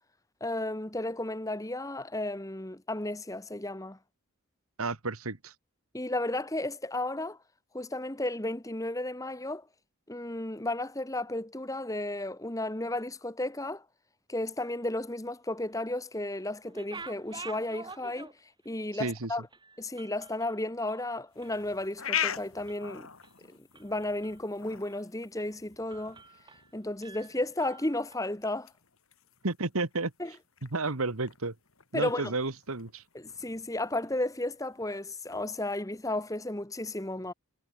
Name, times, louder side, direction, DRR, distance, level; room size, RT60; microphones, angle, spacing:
voice 1, 0.4-4.0 5.9-7.4 7.7-9.7 10.1-13.8 14.3-19.5 19.8-23.1 23.5-26.2 26.7-28.7 30.2-30.3 31.9-32.4 33.1-37.3, left 1 dB, 15° left, 1.2 m, -33 dB
voice 2, 4.8-5.5 18.9-19.3 29.4-30.1 30.7-31.5 31.9-33.0, right 3 dB, 75° right, 1.7 m, -31 dB
sound 1, 16.6-18.7 19.0-19.1 19.5-21.7 22.0-22.3 22.7-23.3 23.8-24.5 24.9-25.0 25.4-25.6 25.9-26.7 27.0-28.2, right 4 dB, 20° right, 7.2 m, -48 dB
sound 2, 21.3-35.4, left 9 dB, 70° left, 4.0 m, -42 dB
head